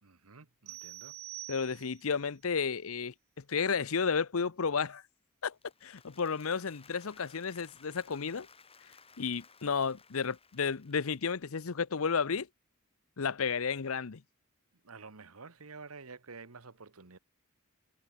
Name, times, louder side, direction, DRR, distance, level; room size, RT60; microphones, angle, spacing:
voice 1, 0.0-1.1 14.8-17.2, right 4 dB, 85° right, 1.4 m, -50 dB
sound 1, 0.7-2.2, right 16 dB, 70° right, 0.5 m, -46 dB
voice 2, 1.5-5.0 5.4-5.5 5.8-8.5 9.2-12.5 13.2-14.2, left 5 dB, 75° left, 0.7 m, -32 dB
Applause, 5.4-11.7, left 5 dB, 25° left, 7.2 m, -59 dB
head